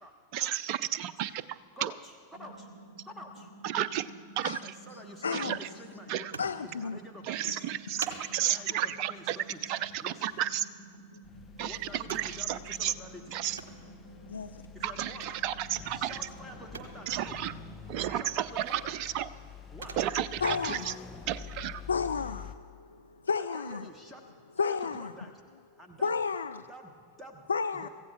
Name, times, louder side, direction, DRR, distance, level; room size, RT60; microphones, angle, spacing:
voice 1, 0.3-1.9 3.6-4.1 4.4-4.7 5.3-5.7 6.1-6.3 7.2-10.7 11.6-12.9 13.3-13.6 14.8-16.3 17.1-17.5 17.9-19.3 20.0-20.9 21.3-21.8, right 11 dB, 45° right, 15 dB, 0.5 m, -32 dB
voice 2, 1.8-2.7 3.0-3.5 4.6-7.6 8.5-9.7 10.0-10.3 11.6-13.2 14.7-15.3 15.9-17.4 18.1-19.0 19.7-20.0 23.5-24.3 24.6-25.4 25.8-26.1 26.7-27.4 27.7-27.9, equal, 5° right, 3 dB, 1.0 m, -48 dB
sound 1, 2.3-17.9, right 2 dB, 25° right, 3.0 m, -52 dB
voice 3, 5.2-5.6 6.4-7.0 11.1-11.2 14.1-14.6 20.4-20.9 21.9-23.9 24.6-25.1 26.0-26.7 27.5-27.9, left 5 dB, 70° left, 10 dB, 0.3 m, -32 dB
sound 2, 6.1-21.0, right 5 dB, 65° right, 1.2 m, -50 dB
sound 3, 11.2-22.6, left 6 dB, 15° left, 0.7 m, -47 dB
24.5 x 15.5 x 2.3 m, 2.2 s
figure-of-eight pair, 90°, 0 cm